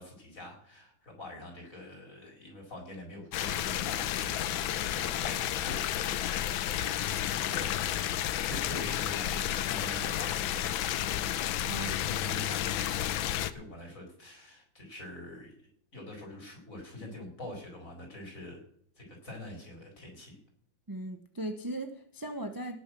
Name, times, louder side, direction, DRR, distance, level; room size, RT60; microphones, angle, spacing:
voice 1, 0.0-6.2 6.9-8.1 8.4-10.8 11.5-12.9 13.5-15.5 15.9-18.6 19.0-20.4, left 1 dB, 40° left, 1 dB, 4.5 m, -45 dB
sound 1, 3.3-13.5, left 11 dB, 85° left, 1.5 m, -31 dB
voice 2, 11.6-12.0 20.9-22.8, right 1 dB, 25° right, 7 dB, 0.4 m, -38 dB
18.0 x 6.7 x 6.1 m, 0.66 s
omnidirectional pair, 2.1 m